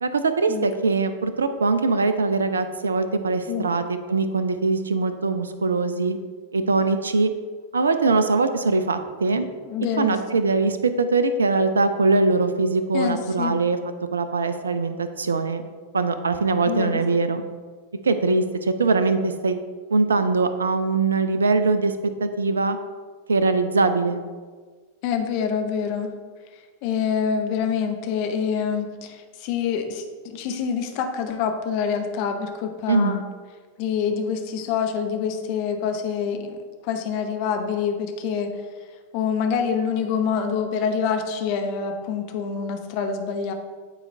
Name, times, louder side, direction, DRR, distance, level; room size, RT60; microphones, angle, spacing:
voice 1, 0.0-6.2 6.5-7.3 7.7-9.4 10.0-13.8 14.1-15.6 15.9-17.4 18.0-19.6 19.9-21.9 22.2-22.8 23.3-24.2 32.9-33.2, right 3 dB, 70° right, 10 dB, 0.4 m, -22 dB
voice 2, 9.6-10.1 12.9-13.5 16.7-17.0 25.0-26.1 26.8-33.2 33.8-36.6 36.8-38.5 39.1-43.5, left 6 dB, 45° left, 5 dB, 0.8 m, -26 dB
9.1 x 4.1 x 3.3 m, 1.5 s
figure-of-eight pair, 90°, 0 cm